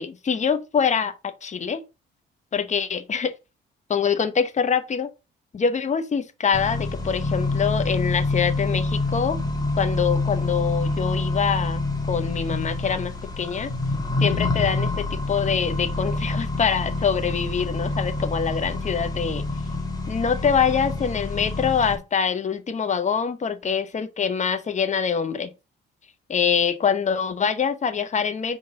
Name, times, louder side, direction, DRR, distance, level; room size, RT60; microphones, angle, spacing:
voice 1, 0.0-1.8 2.5-3.3 3.9-5.1 5.5-9.4 9.8-13.7 14.2-19.4 20.1-25.5 26.3-28.6, left 6 dB, 35° left, 1.0 m, -24 dB
Accelerating revving vroom, 6.5-21.9, left 2 dB, 20° left, 1.6 m, -27 dB
5.1 x 3.9 x 5.1 m
cardioid pair, 90°, 20 cm